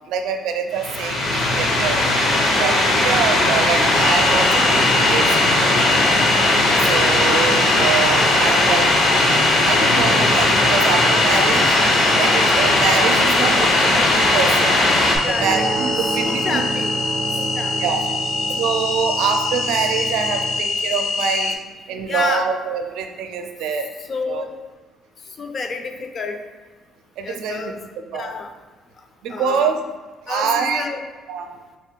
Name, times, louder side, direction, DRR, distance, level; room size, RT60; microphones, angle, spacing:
voice 1, 0.1-2.1 2.6-5.6 6.8-8.9 9.6-11.8 12.2-14.7 15.3-16.6 17.8-18.0 18.6-21.6 21.9-23.9 24.3-24.4 27.2-27.6 28.1-28.3 29.2-29.8 30.3-30.8 31.3-31.5, right 6 dB, 80° right, 5 dB, 0.5 m, -24 dB
sound 1, 0.8-15.2, left 1 dB, 70° left, 1.0 m, -17 dB
sound 2, 3.9-21.5, left 4 dB, 90° left, 0.5 m, -25 dB
voice 2, 6.6-7.0 15.2-15.7 16.2-16.9 17.4-17.8 22.1-22.5 24.0-24.5 25.4-26.4 27.2-27.8 28.1-28.5 29.3-29.7 30.3-31.0, left 4 dB, 40° left, 5 dB, 0.5 m, -29 dB
sound 3, 15.1-20.6, right 4 dB, 30° right, 0.5 m, -29 dB
4.2 x 2.4 x 4.5 m, 1.4 s
cardioid pair, 105°, 0 cm